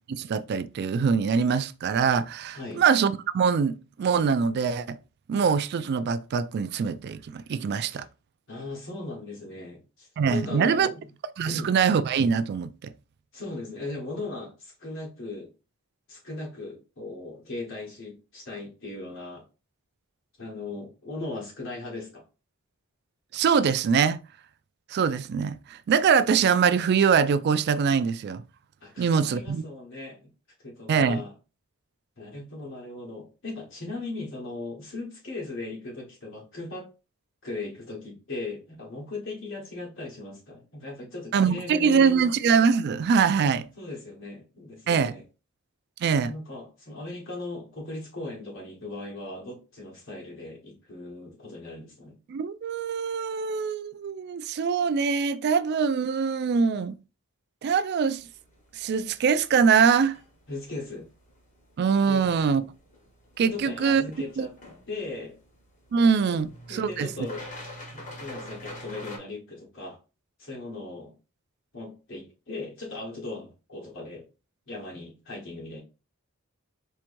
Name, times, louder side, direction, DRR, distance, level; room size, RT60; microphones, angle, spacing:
voice 1, 0.1-3.7 4.0-5.0 5.3-8.1 10.2-10.9 11.4-12.9 23.3-24.2 24.9-28.4 29.0-29.6 30.9-31.2 41.3-43.6 44.9-45.2 46.0-46.3 52.3-57.0 57.6-58.2 58.7-60.2 61.8-62.6 63.4-64.0 64.4-64.5 65.9-67.1, right 6 dB, 50° right, 0.3 m, -23 dB
voice 2, 8.5-11.0 11.4-11.8 13.3-15.5 16.1-19.4 20.4-22.2 28.8-30.3 30.6-31.3 32.2-36.9 37.4-42.3 43.4-45.2 46.2-52.2 60.5-61.1 62.1-62.2 63.4-64.5 64.9-65.4 66.3-66.4 66.7-67.5 67.9-70.0 70.4-71.1 71.7-74.3 74.7-75.8, left 2 dB, 60° left, 1.3 m, -38 dB
sound 1, 58.2-69.2, left 1 dB, 35° left, 1.2 m, -46 dB
4.6 x 3.0 x 2.5 m
head